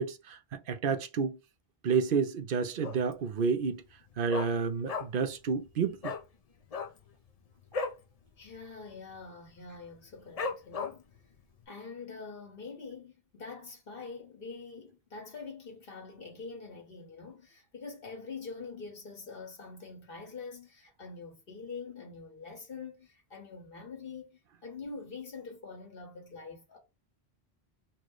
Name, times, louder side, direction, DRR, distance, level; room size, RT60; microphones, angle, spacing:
voice 1, 0.0-1.4 1.8-3.8 4.2-6.1, right 5 dB, 60° right, 0.8 m, -30 dB
Dog, 2.8-3.2 3.5-3.6 3.9-5.3 5.6-5.7 6.0-6.2 6.6-8.0 8.4-8.6 8.8-9.2 9.7-9.8 10.4-11.2 11.6-11.7, left 4 dB, 45° left, 0.6 m, -36 dB
voice 2, 8.4-11.1 11.7-26.8, left 4 dB, 65° left, 1.6 m, -45 dB
4.4 x 2.2 x 4.5 m
omnidirectional pair, 1.0 m